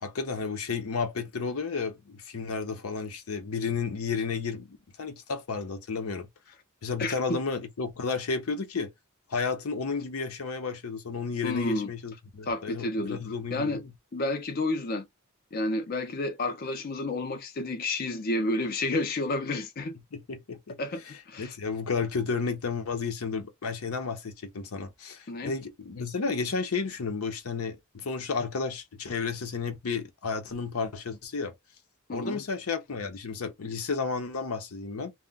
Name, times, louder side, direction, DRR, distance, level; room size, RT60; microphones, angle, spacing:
voice 1, 0.0-6.3 6.8-8.9 9.3-13.9 20.1-20.8 21.0-31.5 32.1-35.1, left 5 dB, 85° left, 0.7 m, -32 dB
voice 2, 7.0-7.4 11.4-11.9 12.5-13.2 13.5-13.8 14.1-15.1 15.5-19.9 20.8-21.5 25.3-25.5 32.1-32.4, left 2 dB, 45° left, 0.5 m, -30 dB
2.3 x 2.1 x 3.8 m
head